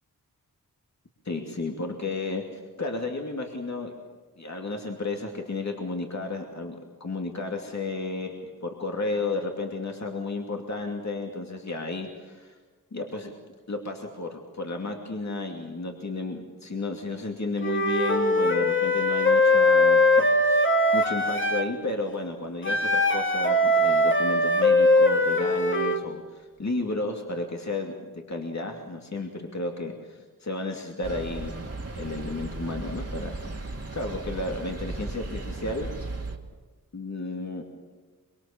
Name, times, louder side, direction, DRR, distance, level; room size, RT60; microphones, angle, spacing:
voice 1, 1.2-2.4 2.8-3.9 4.4-12.5 12.9-13.3 13.7-31.6 32.0-35.9 36.9-37.6, left 2 dB, 50° left, 2 dB, 2.7 m, -33 dB
Wind instrument woodwind instrument, 17.6-21.7 22.6-26.0, left 1 dB, 35° left, 2.1 m, -21 dB
sound 1, 31.0-36.4, right 2 dB, 40° right, 2.3 m, -36 dB
24.5 x 23.5 x 7.3 m, 1.4 s
wide cardioid pair, 90°, 36 cm